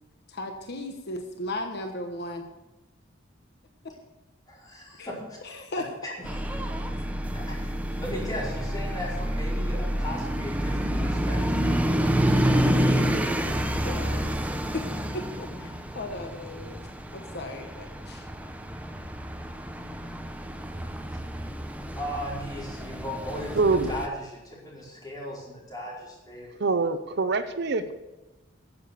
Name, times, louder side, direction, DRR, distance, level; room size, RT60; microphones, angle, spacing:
voice 1, 0.3-2.4 5.0-5.1 5.4-5.8 7.0-7.1 13.1-13.4 13.7-14.3 14.7-14.9 15.1-16.8 17.1-18.3, left 1 dB, 60° left, 5 dB, 1.2 m, -36 dB
voice 2, 4.5-5.4 6.2-6.9 7.3-11.6 21.9-26.5, left 1 dB, 20° left, -5 dB, 5.0 m, -37 dB
sound 1, 6.2-24.1, equal, 10° right, 0.9 m, -28 dB
voice 3, 23.5-23.9 26.6-27.9, right 3 dB, 60° right, 11 dB, 0.7 m, -24 dB
14.0 x 7.5 x 6.9 m, 1.1 s
head